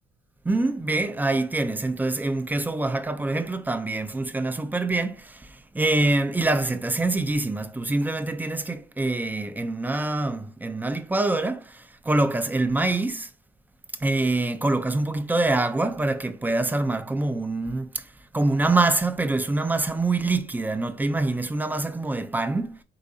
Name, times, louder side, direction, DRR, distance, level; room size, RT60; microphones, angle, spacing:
voice 1, 0.5-5.2 5.7-11.6 12.1-13.3 14.0-17.9 18.3-22.8, right 2 dB, 10° right, 0.5 m, -25 dB
4.7 x 4.0 x 2.7 m
cardioid pair, 110°, 17 cm